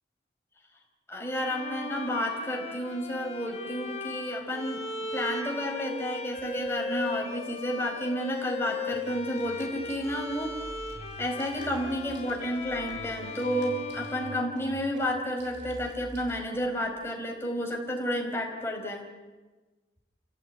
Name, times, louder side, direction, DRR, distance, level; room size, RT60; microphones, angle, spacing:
voice 1, 1.1-10.5 11.2-19.1, equal, 15° left, 0 dB, 4.6 m, -31 dB
Bowed string instrument, 1.4-15.3, left 3 dB, 35° left, 3.5 m, -38 dB
sound 1, 8.9-16.9, right 1 dB, 90° right, 6.2 m, -47 dB
29.5 x 16.5 x 9.5 m, 1.2 s
head